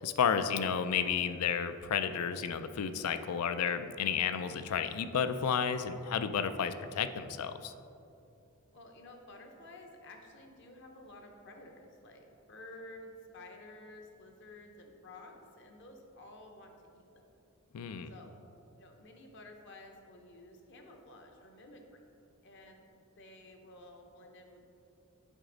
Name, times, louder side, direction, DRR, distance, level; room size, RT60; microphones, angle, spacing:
voice 1, 0.0-7.7 17.7-18.1, left 7 dB, 80° left, 10 dB, 0.4 m, -32 dB
voice 2, 8.7-17.3 18.1-18.3 18.8-22.0 22.4-22.9 23.2-24.7, left 2 dB, 50° left, 3 dB, 0.8 m, -52 dB
8.1 x 4.9 x 3.9 m, 2.7 s
head